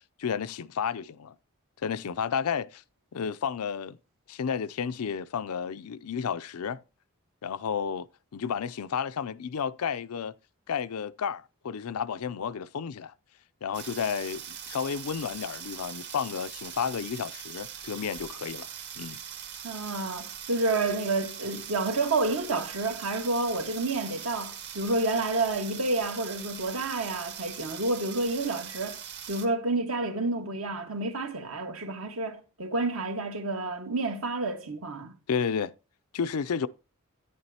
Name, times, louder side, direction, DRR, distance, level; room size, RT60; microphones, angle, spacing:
voice 1, 0.0-1.3 1.8-2.8 3.1-4.0 4.3-6.8 7.4-8.1 8.3-10.3 10.7-13.1 13.6-18.7 19.0-19.2 35.3-35.7 36.1-36.7, left 7 dB, 85° left, 0.5 m, -32 dB
sound 1, 13.7-29.5, right 8 dB, 50° right, 1.4 m, -41 dB
voice 2, 19.6-29.0 29.3-35.1, right 2 dB, 70° right, 1.6 m, -29 dB
11.0 x 9.6 x 2.8 m
head